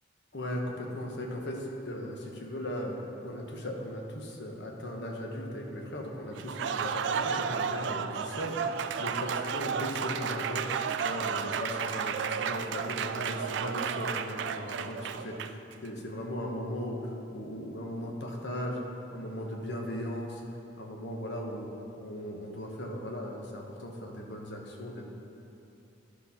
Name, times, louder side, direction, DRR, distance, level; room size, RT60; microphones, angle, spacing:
voice 1, 0.3-8.6 9.0-20.4 20.8-21.7 21.9-25.2, equal, 60° left, 0 dB, 1.1 m, -37 dB
Applause, 6.3-15.7, right 7 dB, 65° right, 0.3 m, -32 dB
11.0 x 4.1 x 5.8 m, 2.8 s
head